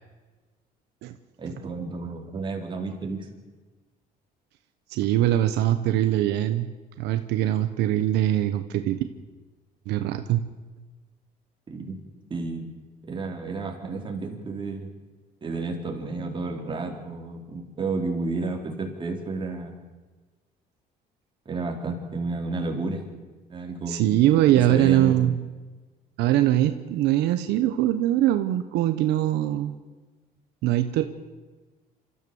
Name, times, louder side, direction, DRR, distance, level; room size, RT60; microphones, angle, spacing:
voice 1, 1.4-3.3 11.7-12.0 12.3-12.7 13.1-14.9 15.4-19.7 21.5-23.0 23.5-24.0 24.5-25.1, right 3 dB, 30° right, 1 dB, 4.1 m, -31 dB
voice 2, 4.9-6.7 7.0-9.0 9.9-10.4 23.9-25.4 26.2-29.7 30.6-31.1, right 13 dB, 85° right, 8 dB, 1.1 m, -22 dB
26.0 x 14.0 x 7.1 m, 1.3 s
cardioid pair, 110°, 17 cm